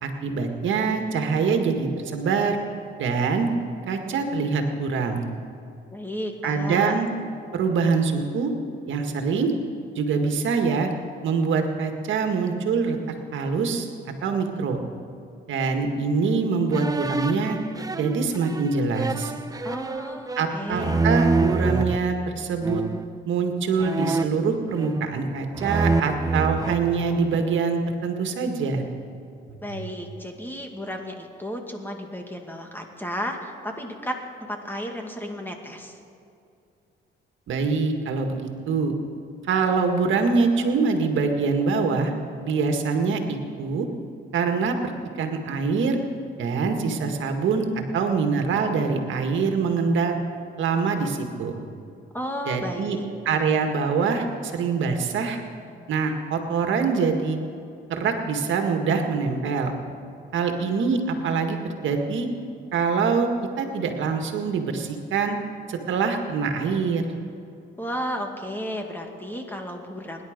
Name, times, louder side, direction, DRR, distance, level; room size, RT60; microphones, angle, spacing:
voice 1, 0.0-2.6 3.0-3.5 3.9-5.2 6.4-7.1 7.5-8.5 8.9-9.5 10.0-10.9 11.2-13.0 13.3-13.9 14.2-14.8 15.5-17.6 18.0-19.3 20.4-22.8 23.3-28.8 29.7-29.8 37.5-39.0 39.5-42.1 42.4-43.9 44.3-44.9 45.2-46.0 46.4-50.2 50.6-51.6 52.5-53.0 53.3-55.4 55.9-57.4 57.9-59.7 60.3-62.3 62.7-63.3 63.6-65.4 65.7-67.0, right 5 dB, 75° right, 4 dB, 1.9 m, -24 dB
voice 2, 5.9-7.0 19.6-21.1 29.6-34.2 34.5-36.0 52.1-53.0 53.3-53.4 67.8-70.2, equal, 10° left, 3 dB, 2.2 m, -33 dB
sound 1, 16.7-22.0 22.6-23.1 23.8-25.2 25.5-27.5, right 3 dB, 20° right, 0.8 m, -27 dB
24.0 x 11.0 x 5.2 m, 2.6 s
cardioid pair, 90°, 20 cm